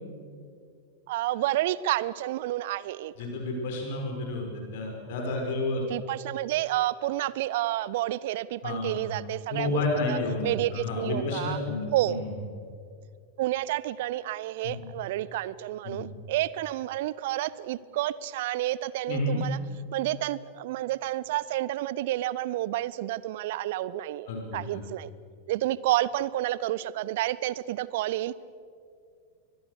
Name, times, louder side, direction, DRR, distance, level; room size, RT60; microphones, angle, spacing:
voice 1, 1.1-3.1 5.9-11.6 11.9-12.2 13.4-19.6 19.9-25.1 25.5-28.6, right 15 dB, 50° right, 20 dB, 0.6 m, -30 dB
voice 2, 3.2-4.4 4.7-5.8 8.6-9.2 9.5-12.3 14.6-14.9 15.8-16.1 19.1-19.4 24.3-24.8, left 2 dB, 50° left, 2 dB, 5.9 m, -31 dB
24.0 x 22.0 x 6.8 m, 2.3 s
figure-of-eight pair, 90°, 0 cm